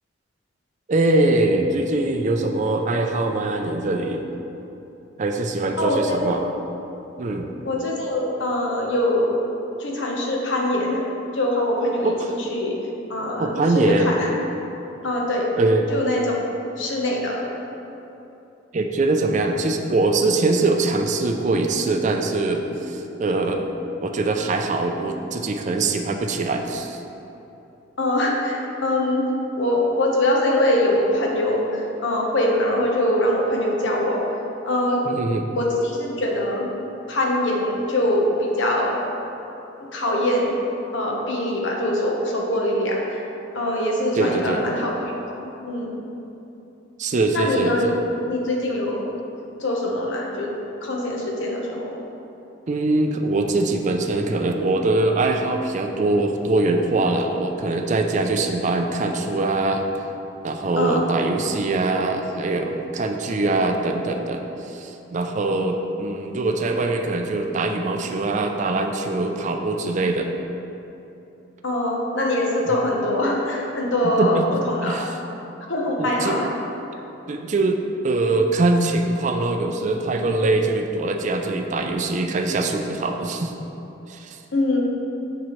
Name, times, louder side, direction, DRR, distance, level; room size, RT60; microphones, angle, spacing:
voice 1, 0.9-4.3 5.2-6.4 7.2-7.5 12.0-12.3 13.4-14.1 15.6-15.9 18.7-23.7 24.0-27.0 35.1-35.5 44.1-44.6 47.0-48.0 52.7-59.8 60.4-70.3 72.7-72.8 74.2-74.5 74.9-75.1 76.0-76.4 77.3-83.5 84.1-84.4, right 2 dB, 40° right, 4 dB, 0.4 m, -22 dB
voice 2, 5.8-6.3 7.6-9.3 9.8-11.0 11.3-12.8 13.1-14.3 15.0-15.5 15.9-16.4 16.6-17.4 28.0-29.3 29.6-34.2 34.6-35.0 35.5-36.7 37.1-39.0 39.9-40.5 40.9-43.2 43.5-45.1 45.4-46.0 47.3-47.9 48.3-49.1 49.6-50.5 50.8-52.0 60.8-61.0 71.6-74.4 74.7-75.0 75.7-76.5 84.5-84.8, left 1 dB, 75° left, -1 dB, 1.0 m, -23 dB
7.4 x 5.4 x 3.1 m, 2.9 s
head